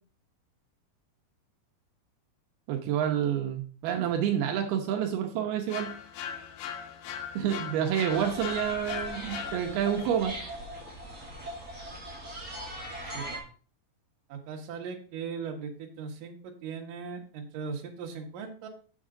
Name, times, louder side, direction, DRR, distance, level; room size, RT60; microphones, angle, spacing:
voice 1, 2.7-5.9 7.3-10.4, right 9 dB, 85° right, 3 dB, 2.9 m, -28 dB
sound 1, 5.7-10.0, left 8 dB, 90° left, 2.8 m, -39 dB
sound 2, 8.1-13.4, right 1 dB, 30° right, 1.6 m, -40 dB
voice 2, 13.0-13.4 14.3-18.7, right 5 dB, 65° right, 1 dB, 2.8 m, -39 dB
7.4 x 7.3 x 3.7 m, 0.40 s
omnidirectional pair, 4.4 m